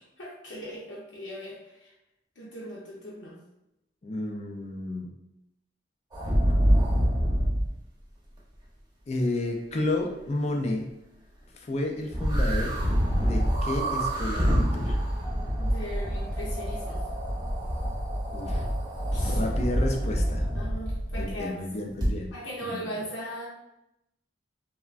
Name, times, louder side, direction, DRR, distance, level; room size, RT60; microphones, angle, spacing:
voice 1, 0.2-1.9 2.4-3.4 15.6-17.0 19.1-19.4 20.5-21.6 22.3-23.5, equal, 80° left, -6 dB, 0.6 m, -38 dB
voice 2, 4.0-5.1 9.1-10.9 11.5-12.8 13.1-15.0 18.3-18.7 19.2-20.5 21.2-22.3 22.6-23.0, left 1 dB, 35° left, 2 dB, 0.4 m, -31 dB
sound 1, 6.1-7.7 12.1-21.4 22.0-22.1, equal, 25° right, 0.7 m, -26 dB
3.3 x 2.1 x 2.4 m, 0.87 s
head